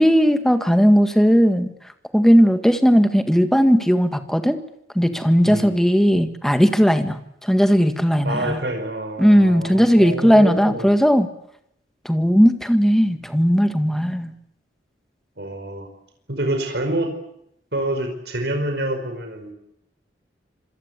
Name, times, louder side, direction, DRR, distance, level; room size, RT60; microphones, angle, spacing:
voice 1, 0.0-1.7 2.1-4.6 5.0-8.6 9.2-11.3 12.1-14.3, equal, 5° left, 8 dB, 1.8 m, -17 dB
voice 2, 5.5-5.8 8.2-10.9 15.4-15.9 16.3-17.1 17.7-19.5, right 1 dB, 70° right, 5 dB, 5.3 m, -27 dB
27.0 x 21.5 x 8.3 m, 0.78 s
head